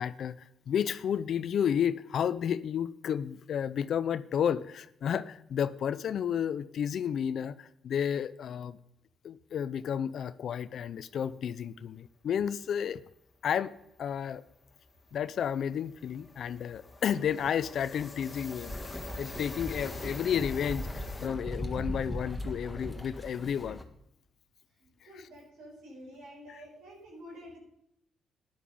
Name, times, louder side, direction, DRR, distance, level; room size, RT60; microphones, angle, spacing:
voice 1, 0.0-8.8 9.2-13.0 13.4-13.7 14.0-14.4 15.1-23.8, left 8 dB, 65° left, 14 dB, 0.5 m, -32 dB
sound 1, 12.9-13.0 13.3-13.5 13.7-21.3, left 3 dB, 20° left, 2.1 m, -46 dB
sound 2, 18.7-23.8, left 1 dB, 5° left, 1.6 m, -39 dB
voice 2, 24.8-27.6, equal, 85° right, -4 dB, 6.0 m, -49 dB
12.5 x 10.5 x 5.3 m, 0.78 s
cardioid pair, 90°, 0 cm